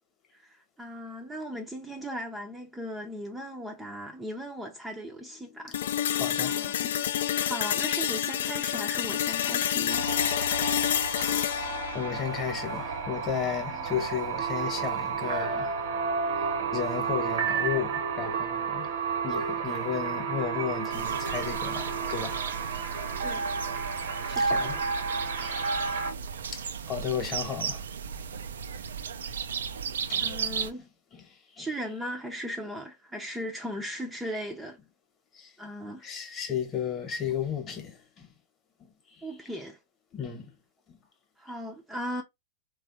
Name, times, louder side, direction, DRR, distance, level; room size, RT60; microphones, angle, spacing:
voice 1, 0.3-5.8 6.4-6.9 7.4-10.1 13.7-13.8 23.2-23.6 24.2-24.7 30.2-30.8 31.6-34.8 35.6-36.1 39.2-39.8 41.4-42.2, equal, 5° right, 0.5 m, -37 dB
voice 2, 5.5-6.7 11.0-15.8 16.3-16.4 16.7-18.9 19.2-22.9 24.4-24.8 25.2-26.1 26.5-27.9 29.2-29.3 29.6-29.8 30.1-30.3 30.8-31.7 35.3-35.5 36.0-38.3 38.8-39.3 40.1-40.5 40.9-41.0, left 7 dB, 30° left, 1.0 m, -35 dB
sound 1, 5.7-13.7, left 10 dB, 75° left, 0.3 m, -29 dB
sound 2, 9.9-26.1, right 5 dB, 70° right, 0.9 m, -31 dB
sound 3, 20.9-30.7, right 6 dB, 85° right, 0.3 m, -35 dB
3.3 x 2.3 x 2.8 m
hypercardioid pair, 125°, 0 cm